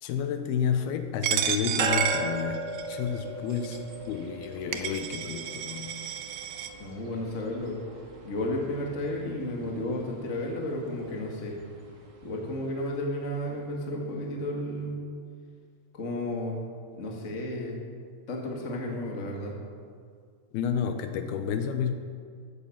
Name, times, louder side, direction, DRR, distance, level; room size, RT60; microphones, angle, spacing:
voice 1, 0.0-6.0 20.5-21.9, left 7 dB, 80° left, 7 dB, 2.6 m, -30 dB
Coin (dropping), 1.2-3.0 3.6-3.8 4.4-4.5 4.7-6.7, right 9 dB, 80° right, 2.5 m, -31 dB
sound 1, 1.8-13.4, right 3 dB, 60° right, 1.1 m, -39 dB
voice 2, 6.8-7.8 8.2-11.6 12.2-15.0 15.9-16.6 17.0-17.8 18.3-19.6, left 1 dB, 45° left, 0 dB, 0.9 m, -32 dB
14.0 x 9.3 x 7.2 m, 2.1 s
omnidirectional pair, 4.8 m